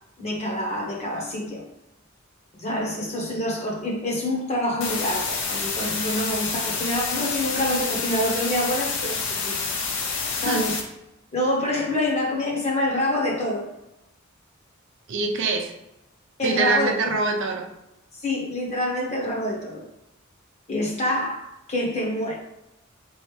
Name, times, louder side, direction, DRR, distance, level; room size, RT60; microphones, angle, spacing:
voice 1, 0.2-1.6 2.6-9.7 10.4-10.8 11.3-13.7 16.4-17.1 18.2-19.8 20.7-22.4, left 1 dB, 30° left, -2 dB, 1.0 m, -26 dB
sound 1, 4.8-10.8, left 4 dB, 65° left, 0.8 m, -28 dB
voice 2, 15.1-15.7 16.4-17.7, right 3 dB, 60° right, 2 dB, 0.6 m, -24 dB
4.2 x 3.2 x 3.2 m, 0.90 s
head